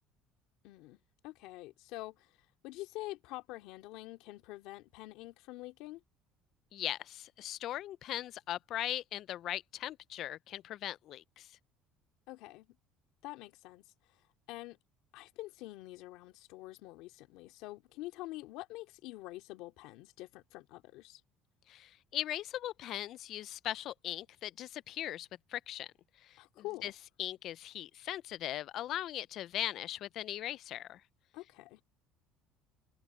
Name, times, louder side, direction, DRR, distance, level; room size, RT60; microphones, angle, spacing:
voice 1, 0.6-2.4 2.6-6.0 12.3-12.8 13.2-14.2 14.5-14.8 15.1-21.2 26.4-26.9 31.3-31.8, left 18 dB, 70° left, 2.7 m, -46 dB
voice 2, 6.7-11.5 21.7-26.9 27.2-31.0, left 13 dB, 50° left, 0.3 m, -39 dB
cardioid pair, 150°, 0 cm